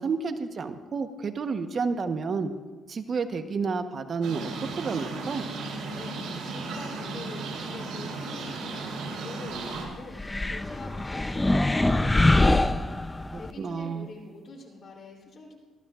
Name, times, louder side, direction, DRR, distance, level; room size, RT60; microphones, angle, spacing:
voice 1, 0.0-2.5 2.9-4.5 4.8-5.4 13.3-14.1, right 5 dB, 50° right, 7 dB, 1.0 m, -30 dB
sound 1, 4.2-9.8, right 3 dB, 80° right, 4.2 m, -35 dB
voice 2, 5.8-6.2 6.4-12.9 13.3-15.5, left 3 dB, 50° left, 0 dB, 3.2 m, -45 dB
sound 2, 10.2-13.5, left 2 dB, 15° left, 0.5 m, -23 dB
21.5 x 15.0 x 2.5 m, 1.3 s
cardioid pair, 90°, 0 cm